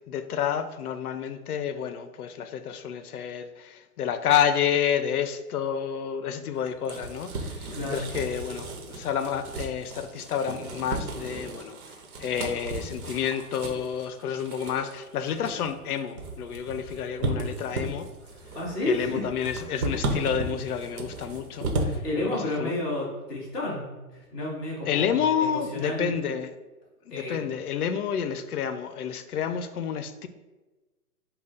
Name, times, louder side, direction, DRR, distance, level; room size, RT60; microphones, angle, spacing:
voice 1, 0.0-11.8 12.2-18.1 18.8-22.7 24.9-26.5 27.1-30.3, left 8 dB, 70° left, 10 dB, 0.6 m, -29 dB
sound 1, 6.5-22.0, right 2 dB, 65° right, 1.1 m, -35 dB
voice 2, 7.7-8.1 18.5-19.3 22.0-26.1 27.1-27.5, left 1 dB, ahead, -15 dB, 0.5 m, -31 dB
5.3 x 2.3 x 3.9 m, 1.2 s
hypercardioid pair, 155°, 46 cm